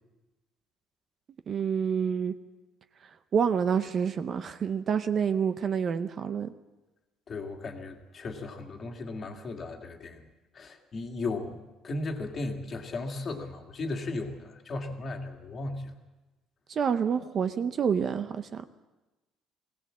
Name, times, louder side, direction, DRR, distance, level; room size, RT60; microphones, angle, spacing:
voice 1, 1.5-2.3 3.3-6.5 16.7-18.6, right 7 dB, 35° right, 10 dB, 0.7 m, -28 dB
voice 2, 7.3-10.2 10.5-11.6 11.8-15.9, left 2 dB, 30° left, 4 dB, 2.0 m, -36 dB
21.0 x 17.0 x 7.5 m, 1.1 s
cardioid pair, 165°, 0 cm